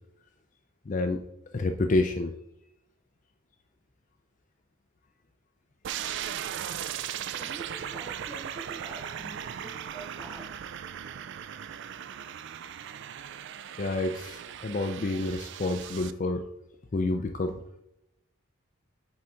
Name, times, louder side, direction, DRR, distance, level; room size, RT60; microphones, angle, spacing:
voice 1, 0.9-1.2 1.5-2.3 13.8-16.4 16.9-17.6, left 2 dB, 35° left, 6 dB, 0.4 m, -28 dB
sound 1, 5.8-16.1, right 9 dB, 55° right, 0.3 m, -38 dB
voice 2, 7.3-10.6, right 2 dB, 10° right, -2 dB, 1.8 m, -46 dB
7.8 x 3.8 x 4.4 m, 0.84 s
head